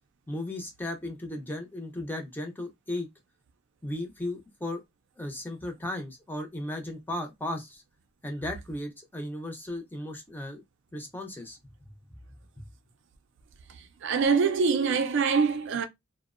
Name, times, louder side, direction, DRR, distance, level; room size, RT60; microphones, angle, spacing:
voice 1, 0.3-3.1 3.8-4.8 5.2-7.8 8.2-10.6 10.9-11.6 12.6-12.7, left 1 dB, 10° left, 0.5 m, -35 dB
voice 2, 14.0-15.9, right 5 dB, 60° right, 0.4 m, -24 dB
2.6 x 2.0 x 2.4 m
head